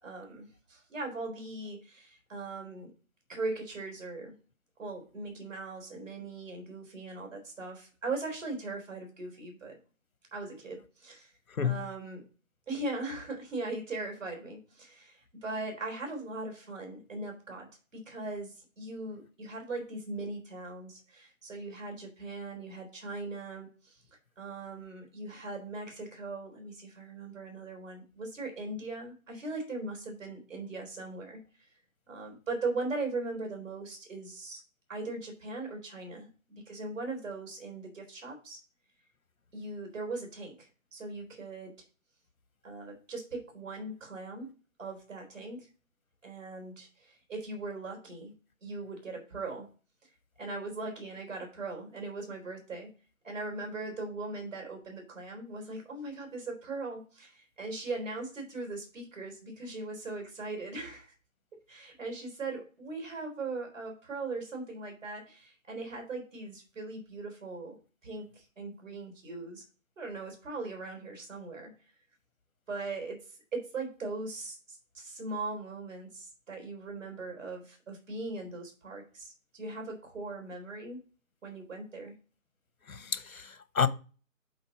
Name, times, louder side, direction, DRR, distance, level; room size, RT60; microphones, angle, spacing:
voice 1, 0.0-2.9 3.3-4.3 4.8-9.8 10.3-11.3 11.6-12.2 12.7-24.0 24.4-31.7 32.1-34.6 34.9-38.6 39.5-41.8 42.6-44.5 44.8-45.7 46.2-48.3 48.6-49.7 50.4-52.9 53.2-61.1 61.7-67.8 68.0-69.6 70.0-71.7 72.7-73.2 73.5-81.0 81.4-82.1, right 3 dB, 65° right, 3.6 m, -39 dB
voice 2, 11.5-11.9 82.9-83.9, left 7 dB, 80° left, 1.0 m, -30 dB
8.0 x 4.1 x 4.9 m
figure-of-eight pair, 150°, 41 cm